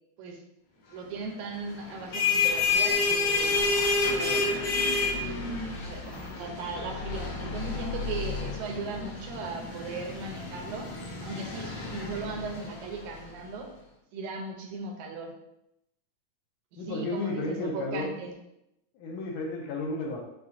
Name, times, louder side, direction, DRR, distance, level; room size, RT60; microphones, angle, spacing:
voice 1, 0.9-3.6 4.1-4.5 5.0-5.4 5.8-10.9 11.2-13.7 14.1-15.4 16.7-18.4, right 4 dB, 90° right, 3 dB, 2.0 m, -37 dB
sound 1, 1.9-13.2, left 4 dB, 55° left, 1.7 m, -29 dB
voice 2, 16.8-18.1 18.9-20.2, left 2 dB, 80° left, 0 dB, 1.6 m, -33 dB
5.5 x 2.3 x 2.5 m, 0.82 s
omnidirectional pair, 3.3 m